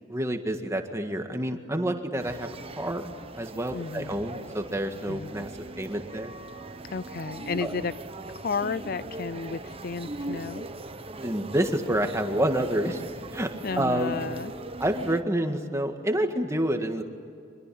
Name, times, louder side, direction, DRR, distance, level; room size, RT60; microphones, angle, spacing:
voice 1, 0.1-2.5 2.8-5.5 5.8-6.3 7.6-7.7 11.2-13.0 13.3-14.2 14.8-17.0, right 1 dB, 15° right, 5 dB, 1.8 m, -28 dB
sound 1, 2.2-15.2, right 2 dB, 30° right, 1.0 m, -40 dB
voice 2, 3.7-4.1 5.1-5.5 6.9-7.9 8.3-10.7 13.6-14.5, left 5 dB, 55° left, 16 dB, 0.5 m, -33 dB
25.0 x 22.0 x 8.7 m, 2.4 s
head